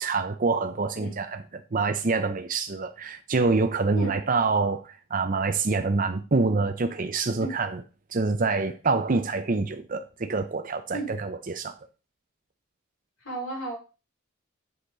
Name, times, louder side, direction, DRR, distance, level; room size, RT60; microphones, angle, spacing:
voice 1, 0.0-1.4 1.7-7.8 8.1-11.7, right 3 dB, 40° right, 0.7 m, -26 dB
voice 2, 13.2-13.8, right 1 dB, 85° left, 5.5 m, -33 dB
7.8 x 6.7 x 4.0 m
head